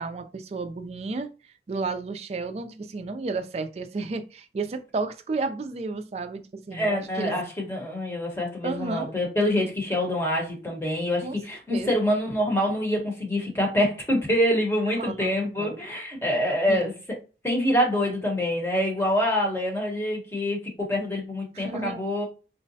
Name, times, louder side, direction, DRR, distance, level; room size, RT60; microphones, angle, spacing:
voice 1, 0.0-7.3 8.6-9.1 11.2-11.4 11.7-11.9 15.0-15.8 16.4-16.9 21.5-22.0, right 3 dB, 35° right, 0.3 m, -32 dB
voice 2, 6.7-16.9 17.4-22.3, left 1 dB, 15° left, 0.9 m, -26 dB
3.7 x 2.1 x 2.7 m
head